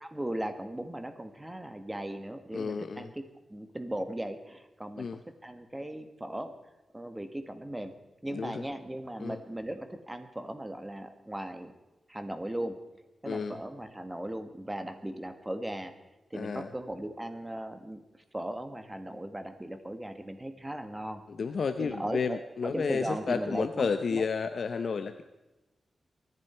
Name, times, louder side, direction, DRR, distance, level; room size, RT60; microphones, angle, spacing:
voice 1, 0.0-3.2 3.5-6.5 6.9-7.9 8.2-11.7 12.1-12.8 13.2-15.9 16.3-18.0 18.3-21.2 21.8-24.3, right 1 dB, 15° right, 8 dB, 1.6 m, -37 dB
voice 2, 2.5-3.1 5.0-5.2 8.3-8.6 9.2-9.4 13.2-13.6 16.3-16.7 21.3-25.2, left 5 dB, 70° left, 9 dB, 0.7 m, -31 dB
23.5 x 11.0 x 4.5 m, 1.1 s
wide cardioid pair, 85°, 0 cm